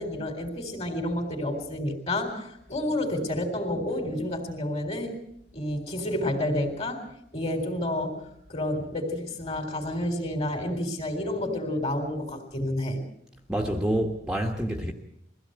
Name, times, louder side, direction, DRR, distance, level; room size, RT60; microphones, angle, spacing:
voice 1, 0.0-5.2 5.5-8.2 8.5-13.0, left 1 dB, 35° left, 3.8 m, -30 dB
voice 2, 13.5-14.9, right 1 dB, 5° right, 1.4 m, -27 dB
22.5 x 16.0 x 7.9 m
head